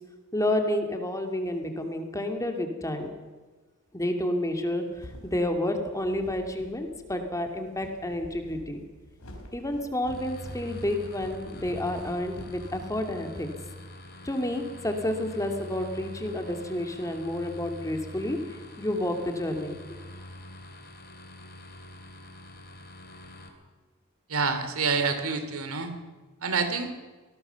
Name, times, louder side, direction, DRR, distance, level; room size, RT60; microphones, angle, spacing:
voice 1, 0.3-3.1 3.9-8.8 9.5-13.5 14.2-18.4 18.8-19.8, left 1 dB, 15° left, 4 dB, 2.4 m, -30 dB
sound 1, 4.5-13.4, equal, 90° left, 4.9 m, -48 dB
sound 2, 10.1-23.5, left 1 dB, 45° left, 3.2 m, -45 dB
voice 2, 24.3-25.9 26.4-26.9, right 4 dB, 75° right, 8 dB, 2.7 m, -27 dB
25.5 x 18.5 x 7.0 m, 1.3 s
head